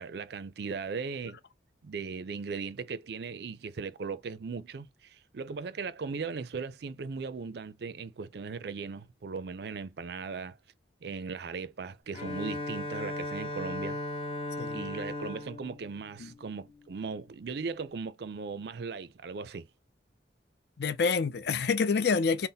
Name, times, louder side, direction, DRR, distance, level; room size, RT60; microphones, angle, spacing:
voice 1, 0.0-1.4 1.8-10.6 11.0-14.0 14.7-19.7, right 5 dB, 60° right, 0.4 m, -38 dB
Bowed string instrument, 12.1-16.9, left 1 dB, 30° left, 0.8 m, -37 dB
voice 2, 20.8-22.5, left 5 dB, 60° left, 0.5 m, -27 dB
4.0 x 2.0 x 3.9 m
head